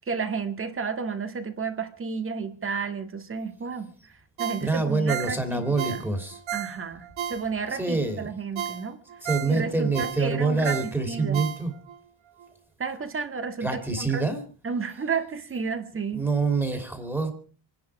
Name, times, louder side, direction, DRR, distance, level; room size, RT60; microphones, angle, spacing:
voice 1, 0.1-3.9 4.4-6.0 6.5-9.0 9.5-11.4 12.8-13.7 14.0-14.2 14.6-16.3, right 5 dB, 25° right, 8 dB, 1.8 m, -32 dB
Ringtone, 4.4-7.8 8.2-8.3 8.6-12.0 12.4-12.5, right 10 dB, 75° right, 1.3 m, -34 dB
voice 2, 4.6-6.4 7.7-8.3 9.2-11.7 13.6-14.4 16.1-17.3, right 3 dB, 5° right, 6 dB, 2.8 m, -26 dB
27.5 x 10.5 x 4.8 m, 0.39 s
cardioid pair, 155°, 47 cm